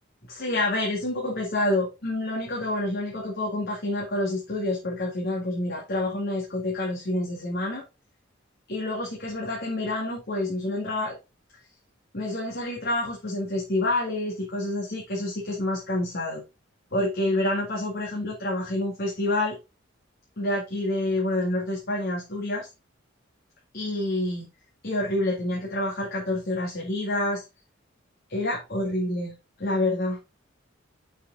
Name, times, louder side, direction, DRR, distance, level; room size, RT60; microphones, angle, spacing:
voice 1, 0.3-7.8 8.7-11.2 12.1-16.4 16.9-19.6 20.4-22.7 23.7-24.5 24.8-27.4 28.3-29.3 29.6-30.2, left 1 dB, 55° left, -1 dB, 2.1 m, -28 dB
6.5 x 5.8 x 3.7 m, 0.26 s
head